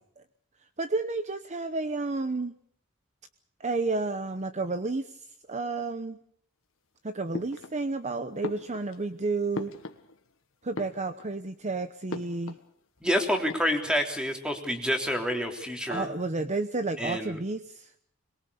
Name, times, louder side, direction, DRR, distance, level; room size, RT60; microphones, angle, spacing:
voice 1, 0.8-2.5 3.6-5.2 5.5-6.2 7.0-9.7 10.6-12.6 15.9-17.9, right 3 dB, 35° right, 10 dB, 0.9 m, -31 dB
sound 1, 7.3-8.1 8.4-10.3 10.6-11.5 12.1-12.7 13.0-13.1 13.3-14.1, left 2 dB, 70° left, 1.7 m, -40 dB
voice 2, 13.0-16.1 17.0-17.4, equal, 5° right, 3 dB, 3.3 m, -28 dB
22.5 x 22.5 x 7.0 m, 0.66 s
head